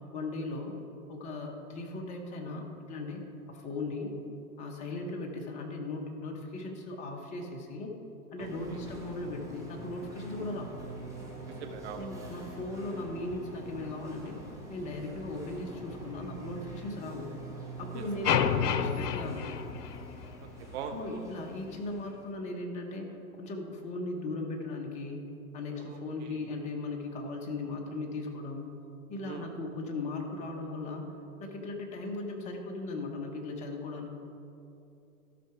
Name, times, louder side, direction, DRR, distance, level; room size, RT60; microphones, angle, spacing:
voice 1, 0.1-0.8 1.1-3.2 3.5-4.2 4.6-7.9 8.3-10.8 12.0-14.4 14.7-17.3 17.8-19.5 20.9-25.3 25.5-28.7 29.1-34.1, left 2 dB, 15° left, 2 dB, 0.7 m, -38 dB
sound 1, 8.4-22.2, right 1 dB, 5° right, 1.2 m, -45 dB
voice 2, 8.4-8.8 10.4-10.5 11.5-12.0 17.9-18.5 20.4-21.0 25.8-26.5 29.2-29.5, right 7 dB, 45° right, 5 dB, 1.0 m, -43 dB
sound 2, 18.2-20.5, left 8 dB, 85° left, 0.7 m, -29 dB
12.5 x 5.7 x 4.6 m, 2.8 s
hypercardioid pair, 135°, 46 cm